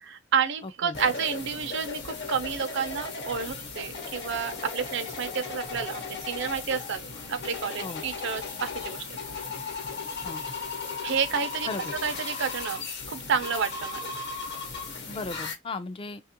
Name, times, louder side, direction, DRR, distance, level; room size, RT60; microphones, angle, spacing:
voice 1, 0.0-7.0 7.3-9.0 11.0-11.7 12.0-14.1, right 6 dB, 65° right, 0.5 m, -30 dB
voice 2, 0.6-1.0 7.8-8.0 10.2-10.4 11.6-11.9 15.0-16.2, left 3 dB, 25° left, 0.4 m, -36 dB
sound 1, 0.9-15.5, left 4 dB, 60° left, 1.0 m, -36 dB
2.8 x 2.4 x 2.8 m
head